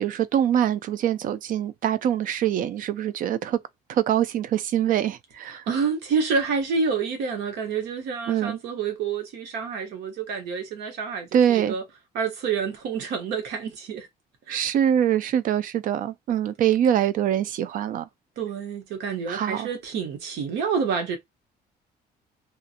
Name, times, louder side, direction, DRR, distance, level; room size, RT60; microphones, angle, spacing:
voice 1, 0.0-3.6 3.9-5.6 8.3-8.6 11.3-11.8 14.5-18.1 19.3-19.7, right 10 dB, 55° right, 0.4 m, -24 dB
voice 2, 5.5-11.8 12.1-14.1 14.5-14.6 18.4-21.2, right 5 dB, 85° right, 1.1 m, -28 dB
2.5 x 2.4 x 2.7 m
cardioid pair, 110°, 17 cm